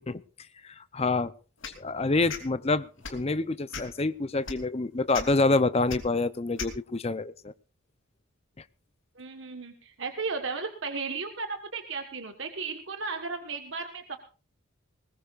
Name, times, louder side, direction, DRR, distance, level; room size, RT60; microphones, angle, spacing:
voice 1, 0.6-1.3 1.8-7.5, left 3 dB, 30° left, 15 dB, 0.6 m, -27 dB
sound 1, 1.6-1.8 2.3-2.4 3.0-3.2 3.7-4.0 4.4-4.6 5.1-5.2 5.9-6.0 6.6-6.7, left 5 dB, 70° left, 2.9 m, -36 dB
voice 2, 9.2-14.2, right 4 dB, 60° right, 5 dB, 1.4 m, -35 dB
20.5 x 20.5 x 2.5 m, 0.35 s
head